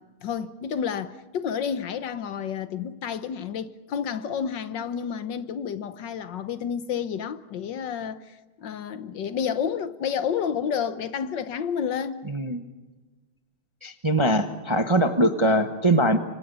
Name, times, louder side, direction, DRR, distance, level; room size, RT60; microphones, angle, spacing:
voice 1, 0.0-12.3, left 7 dB, 65° left, 1.5 m, -30 dB
voice 2, 12.3-12.6 13.8-16.2, right 1 dB, 20° right, 0.8 m, -22 dB
26.5 x 25.0 x 5.5 m
omnidirectional pair, 2.3 m